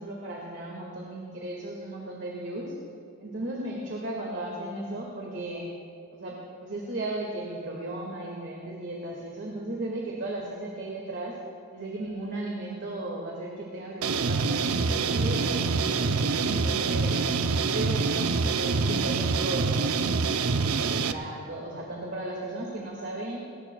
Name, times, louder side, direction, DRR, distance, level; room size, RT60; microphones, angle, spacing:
voice 1, 0.0-2.7 3.2-5.7 6.1-11.3 11.7-17.1 17.7-19.9 21.0-23.4, right 1 dB, 50° right, -3 dB, 2.0 m, -35 dB
sound 1, 14.0-21.1, right 4 dB, 85° right, 0.6 m, -26 dB
21.5 x 18.5 x 2.3 m, 2.3 s
head